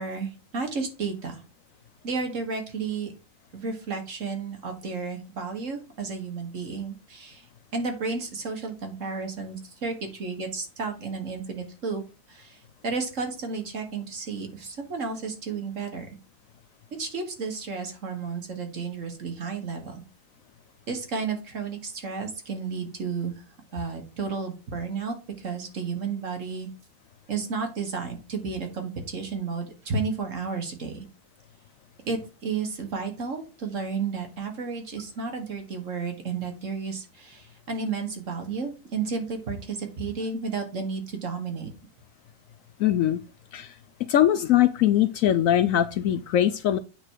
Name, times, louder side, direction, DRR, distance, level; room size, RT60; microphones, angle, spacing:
voice 1, 0.0-1.4 2.0-3.1 3.5-7.5 7.7-12.0 12.3-16.1 17.0-20.0 20.9-23.4 23.7-26.7 27.3-31.1 32.0-41.7, right 4 dB, 55° right, 4 dB, 1.8 m, -32 dB
voice 2, 42.8-43.2 43.5-43.7 44.1-46.8, left 11 dB, 70° left, 11 dB, 0.9 m, -21 dB
9.0 x 3.9 x 4.7 m, 0.32 s
omnidirectional pair, 1.7 m